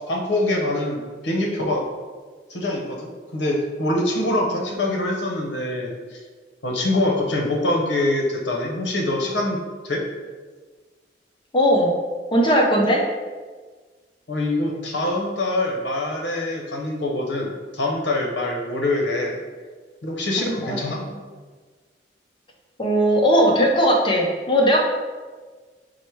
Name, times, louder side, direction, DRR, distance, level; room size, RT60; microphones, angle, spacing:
voice 1, 0.0-1.9 2.5-6.2 6.6-10.0 14.3-19.4 20.0-21.0, left 1 dB, 80° left, 0 dB, 0.8 m, -24 dB
voice 2, 11.5-12.0 12.3-13.0 20.4-21.2 22.8-24.8, equal, 30° left, 0 dB, 0.6 m, -19 dB
4.8 x 2.1 x 4.5 m, 1.4 s
head